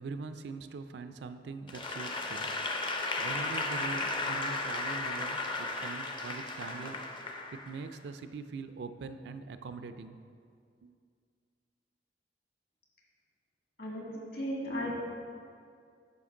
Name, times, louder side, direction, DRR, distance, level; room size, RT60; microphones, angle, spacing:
voice 1, 0.0-2.6 2.8-7.1 7.5-10.2 10.8-10.9, right 4 dB, 65° right, 10 dB, 0.4 m, -43 dB
Applause / Crowd, 1.7-7.9, left 2 dB, 25° left, 0.5 m, -35 dB
voice 2, 13.8-15.0, equal, 60° left, -3 dB, 1.9 m, -36 dB
9.4 x 5.8 x 3.7 m, 2.3 s
head